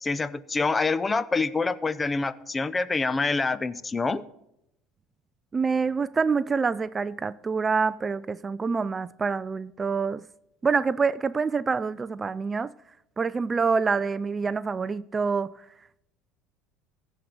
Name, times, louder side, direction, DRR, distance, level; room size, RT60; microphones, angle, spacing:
voice 1, 0.0-4.2, left 3 dB, 20° left, 0.6 m, -26 dB
voice 2, 5.5-10.2 10.6-12.7 13.2-15.5, right 5 dB, 25° right, 0.3 m, -26 dB
15.0 x 5.1 x 6.6 m
hypercardioid pair, 80°, 0 cm